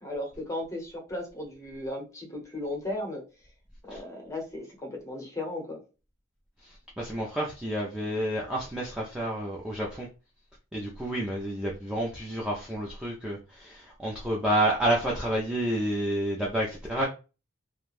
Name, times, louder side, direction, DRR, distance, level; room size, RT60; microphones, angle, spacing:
voice 1, 0.0-3.2 3.8-5.8, left 1 dB, 15° left, 0.9 m, -36 dB
voice 2, 6.6-10.1 10.7-17.1, right 1 dB, 5° right, 0.4 m, -29 dB
2.4 x 2.2 x 3.1 m
head